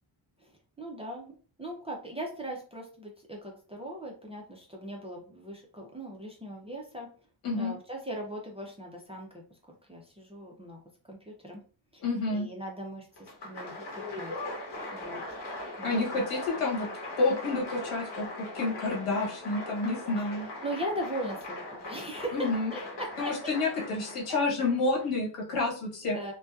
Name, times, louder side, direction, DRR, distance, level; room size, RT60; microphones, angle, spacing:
voice 1, 0.8-7.1 7.5-9.3 9.7-10.8 11.1-11.6 11.9-12.0 12.3-14.3 14.9-15.4 15.8-16.2 20.2-22.3 22.7-23.5 26.1-26.3, right 1 dB, 15° right, 0 dB, 0.4 m, -39 dB
voice 2, 12.0-12.5 15.8-16.9 17.2-20.5 22.3-22.7 23.2-26.2, left 3 dB, 90° left, -2 dB, 1.3 m, -29 dB
Applause, 13.2-25.1, left 2 dB, 55° left, 1.0 m, -40 dB
2.6 x 2.2 x 2.3 m, 0.39 s
wide cardioid pair, 130°, 50 cm